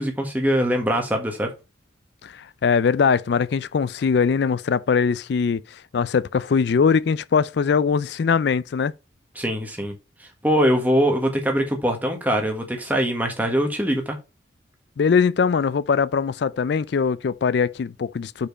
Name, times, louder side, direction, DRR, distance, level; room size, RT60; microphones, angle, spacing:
voice 1, 0.0-1.5 9.3-9.9 10.4-14.2, equal, 10° right, 1.3 m, -22 dB
voice 2, 2.2-8.9 15.0-18.5, left 6 dB, 60° left, 0.3 m, -21 dB
5.2 x 4.4 x 5.3 m
head